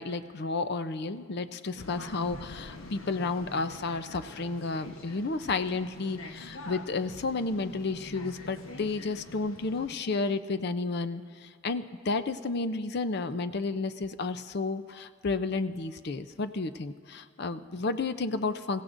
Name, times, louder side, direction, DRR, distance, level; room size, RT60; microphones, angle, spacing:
voice 1, 0.0-18.8, left 3 dB, 55° left, 11 dB, 0.5 m, -32 dB
sound 1, 1.7-9.9, left 1 dB, 90° left, 1.1 m, -45 dB
27.0 x 16.0 x 2.6 m, 2.2 s
head